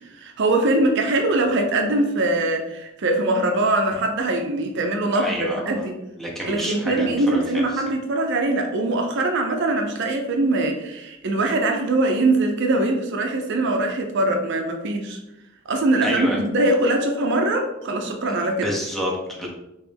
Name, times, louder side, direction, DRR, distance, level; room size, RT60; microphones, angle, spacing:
voice 1, 0.2-6.0 6.5-15.2 15.7-18.7, right 2 dB, 60° right, 3 dB, 0.5 m, -22 dB
voice 2, 5.1-5.8 6.2-7.8 16.0-16.4 18.6-19.5, equal, ahead, -3 dB, 0.7 m, -28 dB
3.3 x 3.0 x 3.3 m, 0.90 s
head